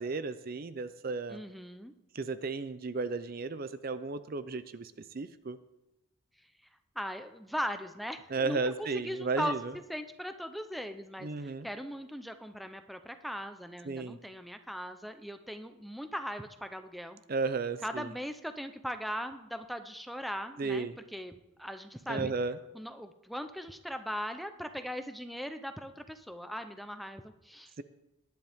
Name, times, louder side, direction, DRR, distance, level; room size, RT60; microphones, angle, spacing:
voice 1, 0.0-1.4 2.1-5.6 8.3-9.7 11.2-11.7 13.8-14.2 17.3-18.1 20.6-21.0 22.1-22.6, right 4 dB, 45° right, 13 dB, 0.5 m, -34 dB
voice 2, 1.3-1.9 7.0-9.5 9.9-17.2 17.8-21.3 21.6-22.3 22.7-27.7, equal, ahead, 8 dB, 0.6 m, -39 dB
19.0 x 11.0 x 3.6 m, 0.97 s
head